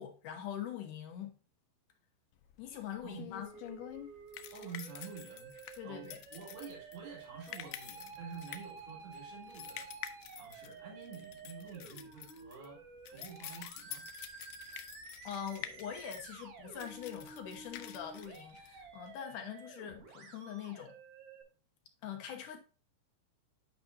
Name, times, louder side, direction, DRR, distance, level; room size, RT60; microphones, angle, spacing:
voice 1, 0.0-1.3 2.6-3.5 5.8-6.2 15.2-20.9 22.0-22.6, left 9 dB, 70° left, 2.2 m, -43 dB
sound 1, 2.4-19.1, left 12 dB, 85° left, 1.9 m, -49 dB
Musical instrument, 3.4-21.4, right 5 dB, 60° right, 1.6 m, -52 dB
voice 2, 4.5-5.5 5.8-12.8 13.1-14.0, right 6 dB, 85° right, 4.5 m, -49 dB
10.5 x 5.0 x 2.6 m
omnidirectional pair, 4.4 m